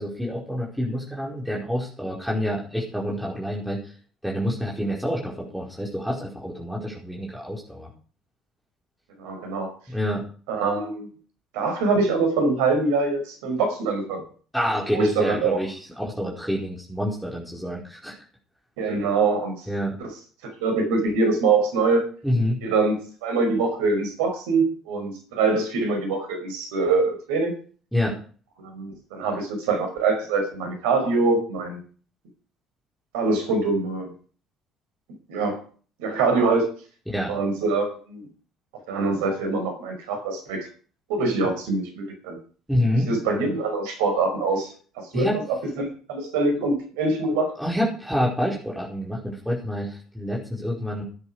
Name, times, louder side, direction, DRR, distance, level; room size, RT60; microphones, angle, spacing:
voice 1, 0.0-3.9 4.2-7.9 9.9-10.2 14.5-18.2 19.7-19.9 22.2-22.6 27.9-28.2 37.1-37.3 42.7-43.1 45.1-45.4 47.6-51.0, equal, ahead, -4 dB, 5.0 m, -27 dB
voice 2, 9.2-9.7 10.5-11.1 11.5-14.2 14.9-15.6 18.8-19.7 20.4-22.0 22.6-27.5 28.7-31.8 33.1-34.1 35.3-35.6 36.0-36.7 37.3-38.3 38.9-40.7 41.1-42.4 43.1-47.5, right 3 dB, 70° right, 4 dB, 5.4 m, -24 dB
17.0 x 9.8 x 5.0 m, 0.42 s
figure-of-eight pair, 55°, 0 cm